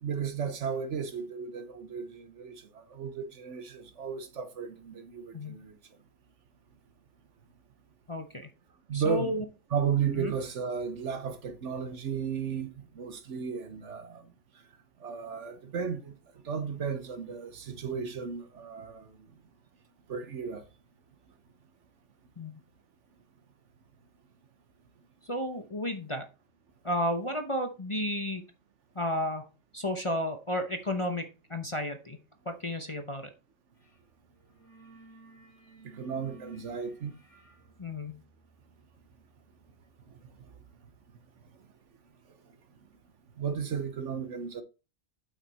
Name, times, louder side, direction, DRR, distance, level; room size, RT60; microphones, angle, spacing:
voice 1, 0.0-5.7 8.9-9.4 9.7-14.3 15.0-16.2 16.4-19.3 20.1-20.6 35.8-37.1 40.1-40.5 43.4-44.6, right 7 dB, 60° right, 1.2 m, -34 dB
voice 2, 8.1-8.5 8.9-9.4 10.2-10.3 22.4-22.6 25.2-26.3 26.8-28.4 28.9-29.5 29.7-32.2 32.5-33.3 37.8-38.2, left 1 dB, 25° left, 0.8 m, -32 dB
sound 1, 33.8-34.0 34.3-41.0, right 3 dB, 10° left, 4.9 m, -57 dB
8.4 x 5.9 x 4.2 m
omnidirectional pair, 1.4 m